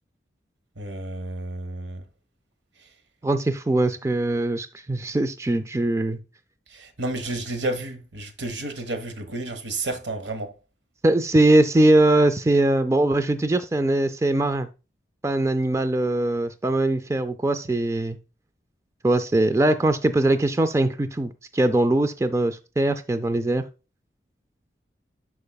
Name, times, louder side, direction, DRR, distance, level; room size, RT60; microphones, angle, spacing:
voice 1, 0.8-2.0 2.8-2.9 6.7-10.5, right 2 dB, 80° right, 1.2 m, -31 dB
voice 2, 3.2-6.2 11.0-14.7 15.2-18.2 19.0-23.6, right 1 dB, 15° right, 0.3 m, -21 dB
12.0 x 4.8 x 2.3 m
head